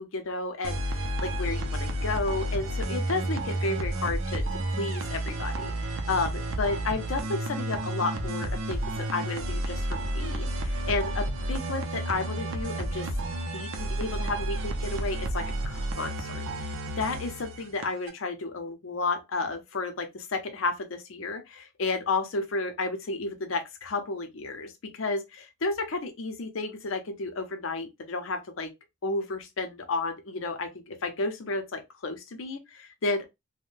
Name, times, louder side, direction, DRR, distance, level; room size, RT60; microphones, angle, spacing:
voice 1, 0.0-13.1 13.5-28.7 29.0-33.2, left 3 dB, 80° left, 0.6 m, -32 dB
sound 1, 0.6-18.1, right 1 dB, 80° right, 0.6 m, -31 dB
3.4 x 2.2 x 2.5 m
head